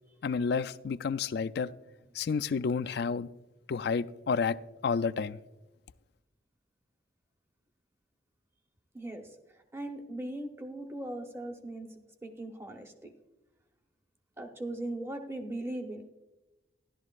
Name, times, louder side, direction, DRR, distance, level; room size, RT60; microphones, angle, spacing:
voice 1, 0.2-1.7 2.1-3.3 3.7-4.6 4.8-5.4, left 5 dB, 55° left, 0.3 m, -30 dB
voice 2, 8.9-9.4 9.7-13.1 14.4-16.1, right 1 dB, 15° right, 0.8 m, -39 dB
14.0 x 11.5 x 2.4 m
head